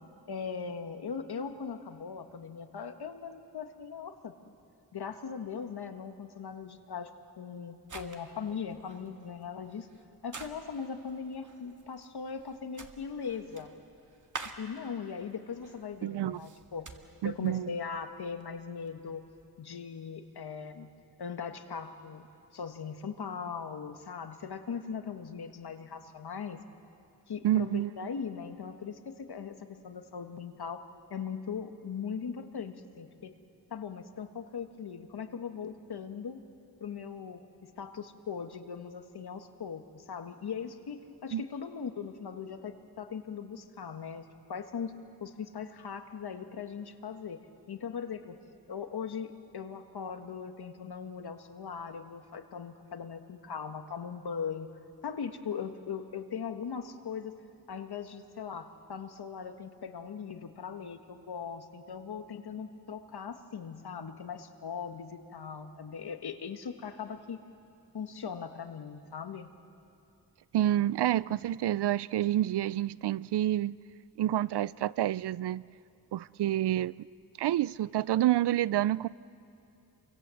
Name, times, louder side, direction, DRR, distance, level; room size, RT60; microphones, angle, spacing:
voice 1, 0.3-4.5 4.9-7.1 7.4-9.9 10.2-13.7 14.6-16.9 17.2-19.2 19.6-20.9 21.2-22.2 22.5-26.6 27.3-30.8 31.1-33.3 33.7-36.4 36.8-44.9 45.2-47.4 47.7-48.4 48.7-54.7 55.0-57.3 57.7-67.4 67.9-69.5, left 6 dB, 75° left, 1.6 m, -39 dB
sound 1, 7.9-19.5, right 4 dB, 50° right, 1.9 m, -50 dB
voice 2, 16.0-16.4 17.2-17.7 27.4-28.1 41.3-41.4 70.5-73.8 74.2-75.7 76.1-76.9 77.4-79.1, right 13 dB, 85° right, 0.5 m, -28 dB
28.0 x 24.5 x 7.7 m
wide cardioid pair, 80°, 39 cm